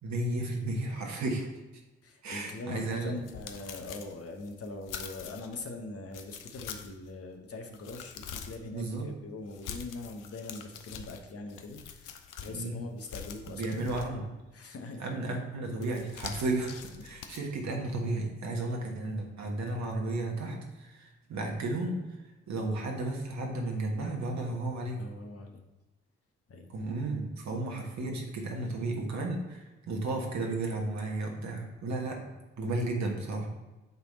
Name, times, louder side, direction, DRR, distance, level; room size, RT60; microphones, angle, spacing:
voice 1, 0.0-1.5 2.2-3.2 8.7-9.1 12.5-12.9 13.5-14.3 15.0-22.0 22.5-25.0 26.7-32.3 32.6-33.5, right 2 dB, 55° right, 1 dB, 1.5 m, -33 dB
voice 2, 2.0-13.9 14.5-15.0 25.0-25.6 26.5-26.7, left 3 dB, 45° left, 4 dB, 1.1 m, -42 dB
sound 1, 2.8-5.6 6.1-7.1 7.5-8.7 9.5-12.6 13.0-14.4 15.8-17.4, left 8 dB, 65° left, 0.7 m, -45 dB
8.2 x 3.5 x 4.1 m, 1.1 s
hypercardioid pair, 40°, 34 cm